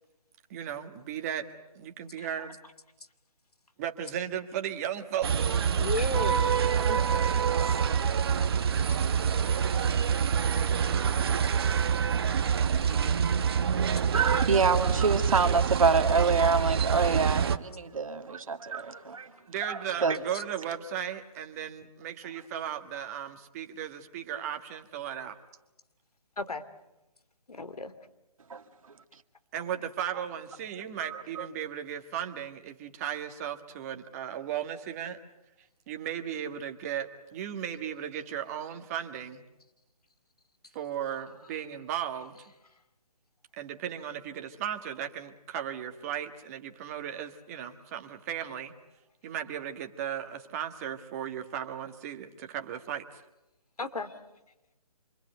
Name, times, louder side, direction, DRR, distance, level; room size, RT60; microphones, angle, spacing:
voice 1, 0.5-1.5 1.7-2.6 3.8-5.3 19.5-25.4 29.5-35.2 35.9-39.4 40.7-42.4 43.6-48.7 49.2-53.2, right 9 dB, 25° right, 1.6 m, -36 dB
sound 1, 5.2-17.6, right 7 dB, 40° right, 1.1 m, -26 dB
voice 2, 5.8-6.5 6.9-7.0 8.9-9.0 26.4-26.6 27.5-27.9 53.8-54.1, left 3 dB, 75° left, 2.5 m, -34 dB
voice 3, 13.8-19.3 19.6-20.2 28.5-28.6 31.0-31.5, right 4 dB, 60° right, 1.9 m, -27 dB
27.5 x 24.5 x 8.1 m
figure-of-eight pair, 150°, 19 cm